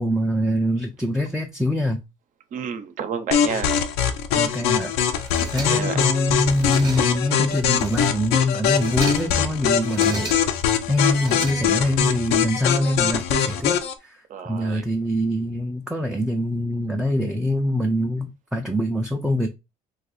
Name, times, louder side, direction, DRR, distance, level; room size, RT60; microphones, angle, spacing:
voice 1, 0.0-2.0 4.3-4.9 5.5-10.3 10.9-14.2 14.4-19.5, left 1 dB, 5° right, 0.4 m, -24 dB
voice 2, 2.5-3.8 5.7-6.0 14.3-14.9, right 7 dB, 55° right, 0.6 m, -30 dB
sound 1, 3.3-13.9, left 8 dB, 90° left, 0.6 m, -22 dB
sound 2, 5.2-6.1 6.4-7.3 7.7-8.3 8.7-9.4 9.8-10.7 11.1-12.0, right 2 dB, 25° right, 0.8 m, -35 dB
2.6 x 2.3 x 4.1 m
cardioid pair, 100°, 16 cm